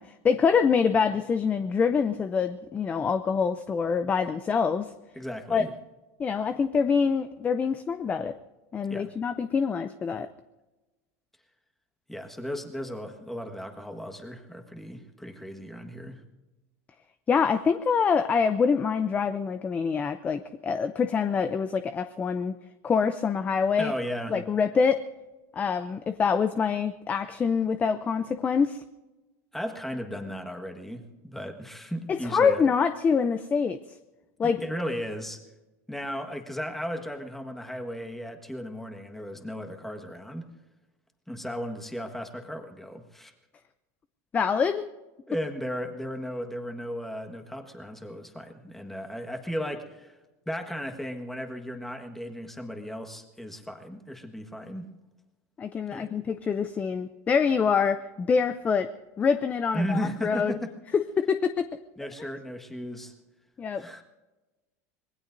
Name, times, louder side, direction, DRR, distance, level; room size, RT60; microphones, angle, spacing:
voice 1, 0.0-4.9 5.5-5.6 6.2-8.4 8.7-10.3 17.3-22.5 22.8-23.9 24.3-25.0 25.5-28.8 32.1-33.8 34.4-34.6 44.3-44.9 55.6-60.5 60.9-61.7 63.6-63.9, left 6 dB, 20° left, 11 dB, 0.5 m, -25 dB
voice 2, 5.1-5.7 8.9-9.1 12.1-16.2 23.8-24.4 29.5-32.6 34.4-35.4 35.9-40.5 41.3-43.3 45.3-50.2 50.4-54.9 55.9-56.1 59.7-60.7 62.0-63.1 63.7-64.0, equal, 5° left, 4 dB, 1.5 m, -35 dB
26.0 x 20.5 x 2.7 m, 1.1 s
supercardioid pair, 145°, 8 cm